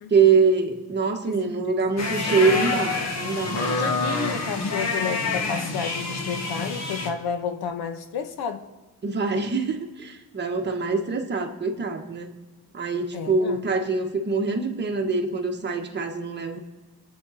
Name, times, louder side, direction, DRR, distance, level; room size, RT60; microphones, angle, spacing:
voice 1, 0.1-3.9 9.0-12.3 12.7-16.6, right 4 dB, 30° right, 1.5 m, -24 dB
voice 2, 1.2-2.1 3.7-8.7 13.1-13.6, left 7 dB, 90° left, 1.3 m, -31 dB
sound 1, 2.0-7.1, left 3 dB, 45° left, 1.6 m, -27 dB
25.5 x 8.7 x 4.2 m
cardioid pair, 155°, 37 cm